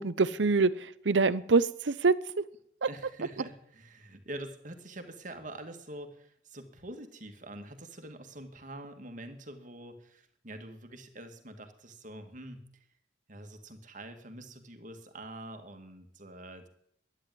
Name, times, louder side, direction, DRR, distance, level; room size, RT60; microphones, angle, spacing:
voice 1, 0.0-2.4, right 4 dB, 90° right, 17 dB, 0.7 m, -25 dB
voice 2, 2.9-12.9 13.3-16.7, right 1 dB, 45° right, 6 dB, 2.0 m, -45 dB
12.0 x 10.0 x 9.2 m, 0.69 s
head